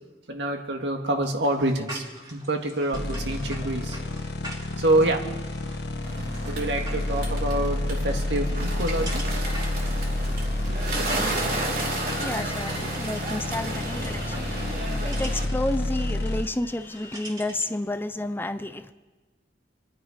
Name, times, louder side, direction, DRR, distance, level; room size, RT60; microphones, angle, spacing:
voice 1, 0.3-4.0 4.8-5.3 6.5-9.2 10.7-10.9, right 1 dB, 70° right, 3 dB, 1.9 m, -26 dB
sound 1, 1.4-17.8, right 1 dB, 20° right, 2.4 m, -44 dB
sound 2, 2.9-16.4, left 1 dB, 65° left, 1.3 m, -29 dB
Bird, 6.0-15.4, right 2 dB, 55° right, 2.7 m, -33 dB
voice 2, 12.2-18.9, left 1 dB, 10° left, 10 dB, 0.4 m, -31 dB
27.0 x 10.5 x 5.0 m, 1.3 s
head